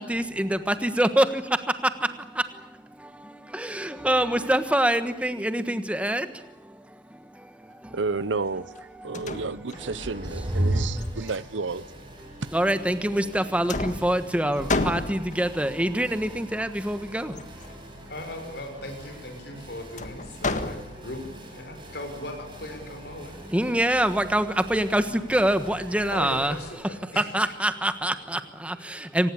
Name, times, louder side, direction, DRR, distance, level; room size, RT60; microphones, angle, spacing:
voice 1, 0.0-8.0 8.9-9.3 9.8-11.3 12.2-18.1 19.5-19.6 21.7-21.9 23.3-29.3, right 1 dB, 5° right, 10 dB, 1.4 m, -26 dB
voice 2, 7.9-8.7 9.0-11.9, right 4 dB, 80° right, 17 dB, 0.8 m, -31 dB
sound 1, 8.8-8.9 9.1-10.2 11.0-12.0 13.0-13.4 13.7-15.6 17.3-17.8 20.0-21.3, left 3 dB, 40° left, 1.6 m, -32 dB
sound 2, 9.7-26.7, right 1 dB, 25° right, 5.8 m, -37 dB
voice 3, 18.1-23.3 26.1-27.3, left 1 dB, 60° left, 6 dB, 5.8 m, -38 dB
25.5 x 19.5 x 8.7 m, 0.91 s
head